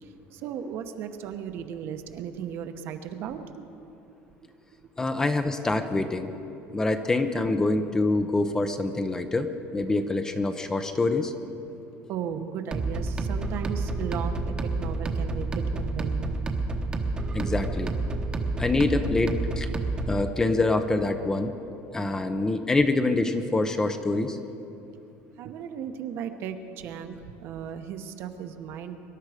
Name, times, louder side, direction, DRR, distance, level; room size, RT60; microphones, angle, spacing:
voice 1, 0.0-3.9 12.1-16.4 19.7-19.9 22.4-22.5 24.9-25.0 25.4-29.0, right 8 dB, 50° right, 7 dB, 1.0 m, -36 dB
voice 2, 5.0-6.3 6.7-11.3 17.3-17.9 18.6-19.7 20.1-21.5 21.9-24.4, left 2 dB, 10° left, 8 dB, 0.6 m, -25 dB
sound 1, 12.7-20.2, right 3 dB, 20° right, 1.0 m, -29 dB
24.5 x 12.0 x 5.0 m, 2.8 s
cardioid pair, 165°, 5 cm